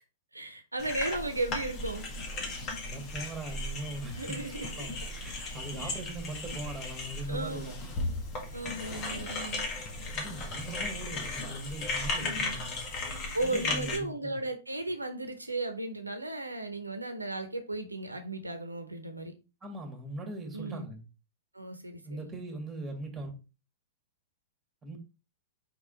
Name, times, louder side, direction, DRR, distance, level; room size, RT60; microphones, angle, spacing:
voice 1, 0.3-2.1 4.2-4.9 5.7-6.0 7.3-7.7 8.5-9.7 12.2-12.6 13.3-19.3 20.5-20.8 21.5-22.3, right 2 dB, 90° right, 0.9 m, -35 dB
sound 1, 0.8-14.0, left 2 dB, 35° left, 1.9 m, -36 dB
voice 2, 2.8-4.4 4.7-7.9 10.1-12.8 13.4-14.4 19.6-21.0 22.0-23.3 24.8-25.0, right 1 dB, 15° right, 2.1 m, -40 dB
5.3 x 4.7 x 3.9 m
figure-of-eight pair, 105°, 0 cm